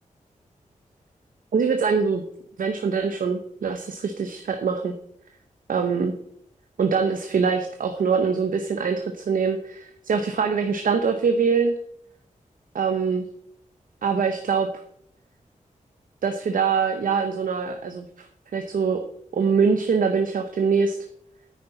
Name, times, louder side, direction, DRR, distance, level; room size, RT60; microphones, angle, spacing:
voice 1, 1.5-2.2 2.6-4.9 5.7-6.1 6.8-11.7 12.7-13.3 14.0-14.7 16.2-18.3 18.5-19.0 19.3-21.0, right 5 dB, 85° right, 5 dB, 0.9 m, -23 dB
10.0 x 9.5 x 4.0 m, 0.69 s
wide cardioid pair, 105°, 14 cm